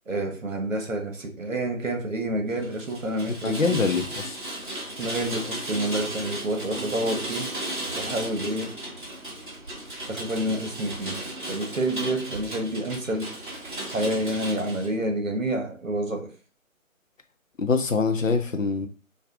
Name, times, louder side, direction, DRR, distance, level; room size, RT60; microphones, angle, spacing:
voice 1, 0.1-3.8 5.0-7.5 7.9-8.7 10.1-13.4 13.9-16.3, right 1 dB, 65° right, 1.1 m, -28 dB
Rain, 2.6-14.9, right 1 dB, 35° right, 1.0 m, -35 dB
voice 2, 3.4-4.4 17.6-18.9, left 4 dB, 65° left, 0.7 m, -24 dB
4.8 x 2.4 x 2.4 m
figure-of-eight pair, 155°, 42 cm